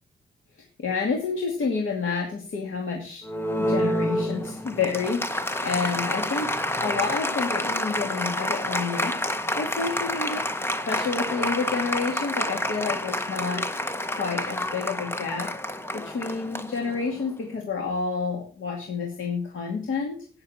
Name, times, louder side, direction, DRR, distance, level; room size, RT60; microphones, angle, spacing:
voice 1, 0.8-3.2 3.6-6.5 6.8-10.4 10.9-13.6 14.1-15.5 15.9-20.2, left 5 dB, 75° left, 0 dB, 2.4 m, -29 dB
Applause, 3.2-17.3, left 1 dB, 10° left, 0.8 m, -29 dB
12.0 x 9.7 x 4.3 m, 0.40 s
wide cardioid pair, 165°, 21 cm